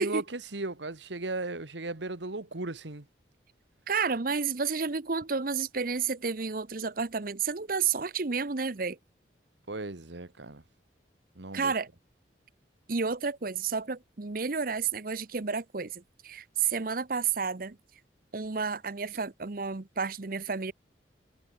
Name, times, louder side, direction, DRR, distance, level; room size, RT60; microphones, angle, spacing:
voice 1, 0.0-3.0 9.7-10.6 11.3-11.7, right 2 dB, 75° right, 1.6 m, -36 dB
voice 2, 3.9-9.0 11.5-11.9 12.9-17.8 18.3-20.7, right 5 dB, 50° right, 0.9 m, -31 dB
head